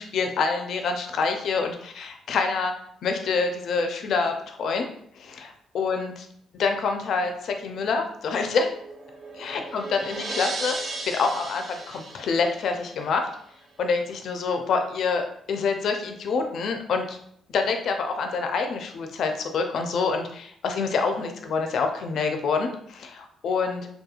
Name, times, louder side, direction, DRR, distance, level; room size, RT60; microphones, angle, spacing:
voice 1, 0.0-2.7 3.0-4.9 5.2-5.5 5.7-6.3 6.6-8.7 9.4-10.8 11.0-13.3 13.8-17.2 17.5-23.9, left 4 dB, 65° left, 5 dB, 0.4 m, -26 dB
sound 1, 8.2-13.4, right 2 dB, 45° right, 0.5 m, -36 dB
2.8 x 2.2 x 2.3 m, 0.66 s
cardioid pair, 90°, 0 cm